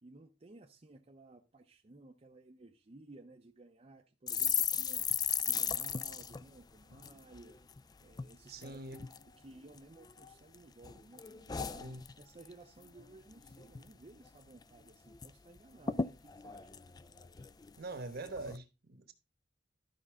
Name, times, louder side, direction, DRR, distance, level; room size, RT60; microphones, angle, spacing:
voice 1, 0.0-5.1 5.5-7.6 8.0-11.9 12.2-16.7, right 2 dB, 35° right, 0.6 m, -56 dB
sound 1, 4.3-7.8 8.1-8.3 8.6-9.2 9.7-10.5 10.8-12.5 12.8-13.0 13.3-13.9 14.2-14.3 14.6-15.3 15.6-15.7 15.9-17.7 18.2-18.6, left 7 dB, 20° left, 0.3 m, -36 dB
voice 2, 8.5-9.0 11.8-12.0 17.8-19.1, right 2 dB, 60° right, 1.1 m, -43 dB
12.5 x 5.3 x 3.6 m
head